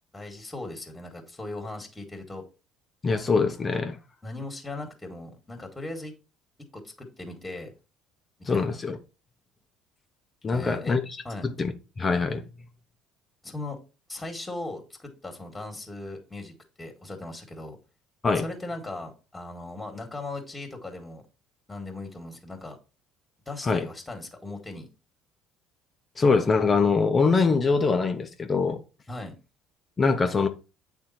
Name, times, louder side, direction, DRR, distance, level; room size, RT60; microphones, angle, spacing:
voice 1, 0.1-2.5 4.2-6.1 6.7-7.7 8.4-8.8 10.5-11.0 11.2-11.5 13.4-13.8 14.1-17.8 18.4-21.2 21.7-22.8 23.5-24.9 29.1-29.4, left 2 dB, 15° left, 1.9 m, -38 dB
voice 2, 3.0-4.0 8.5-9.0 10.4-11.0 11.4-12.4 18.2-18.5 23.6-23.9 26.2-28.8 30.0-30.5, left 4 dB, 30° left, 0.9 m, -23 dB
8.8 x 3.6 x 4.2 m
hypercardioid pair, 60°, 0 cm